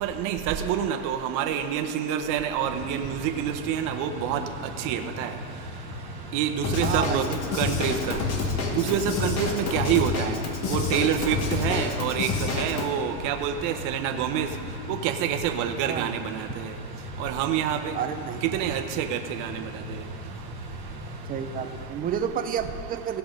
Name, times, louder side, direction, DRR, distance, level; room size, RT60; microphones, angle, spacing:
voice 1, 0.0-4.4 4.8-5.3 6.3-7.2 7.6-7.9 8.7-10.3 10.7-14.5 15.0-16.5 17.2-17.9 18.5-19.5, right 9 dB, 45° right, 6 dB, 0.9 m, -27 dB
sound 1, 2.6-21.9, left 1 dB, 15° left, 1.6 m, -39 dB
Drum kit / Drum, 6.6-12.9, left 4 dB, 35° left, 1.4 m, -28 dB
voice 2, 6.8-7.6 15.9-16.1 17.9-18.7 21.3-23.2, right 8 dB, 20° right, 7 dB, 0.6 m, -30 dB
16.5 x 5.8 x 5.2 m, 2.4 s
supercardioid pair, 125°, 44 cm